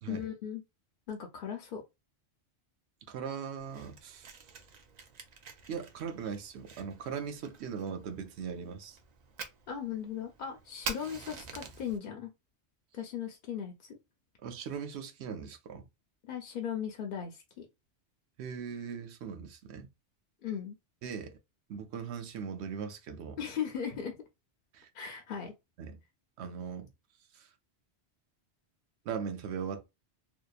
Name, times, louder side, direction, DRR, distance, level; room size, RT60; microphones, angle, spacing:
voice 1, 0.1-0.6 1.1-1.8 9.7-12.3 12.9-14.0 16.2-17.7 20.4-20.8 23.4-24.2 24.9-25.5, left 8 dB, 60° left, 0.6 m, -37 dB
voice 2, 3.1-4.4 5.7-9.0 14.4-15.9 18.4-19.9 21.0-21.4 21.7-23.4 24.7-24.9 25.8-26.0 26.4-26.9 27.3-27.5 29.0-29.9, right 6 dB, 75° right, 0.8 m, -39 dB
Fire, 3.6-12.0, right 5 dB, 55° right, 0.5 m, -46 dB
2.8 x 2.2 x 2.2 m
omnidirectional pair, 1.1 m